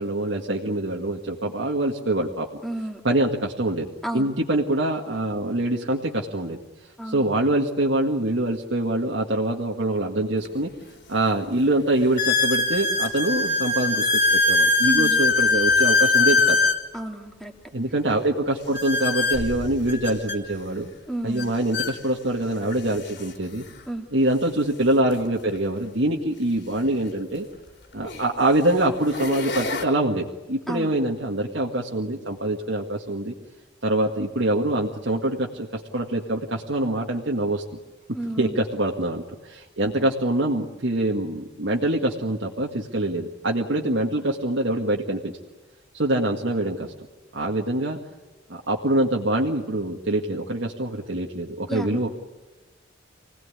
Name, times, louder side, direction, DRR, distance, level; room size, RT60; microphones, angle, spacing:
voice 1, 0.0-2.5 3.0-6.6 7.0-10.7 11.1-16.6 17.7-20.9 21.2-23.6 24.1-27.5 27.9-33.3 33.8-37.6 38.4-45.3 45.9-46.9 47.3-48.0 48.5-52.1, right 1 dB, 60° right, -1 dB, 1.8 m, -24 dB
voice 2, 2.6-3.0 4.0-4.3 7.0-7.3 14.9-15.2 16.9-17.5 21.1-21.5 23.9-24.0 30.7-31.0 38.1-38.6 51.7-52.0, right 1 dB, ahead, 3 dB, 2.6 m, -31 dB
sound 1, 10.4-10.5 11.2-11.3 12.2-16.8 18.7-20.4 21.4-21.5 21.7-21.9 22.7-22.8 25.0-25.1 27.2-27.3 28.0-28.3 28.9-29.8, left 3 dB, 60° left, 3.7 m, -22 dB
26.0 x 18.5 x 9.8 m, 1.2 s
head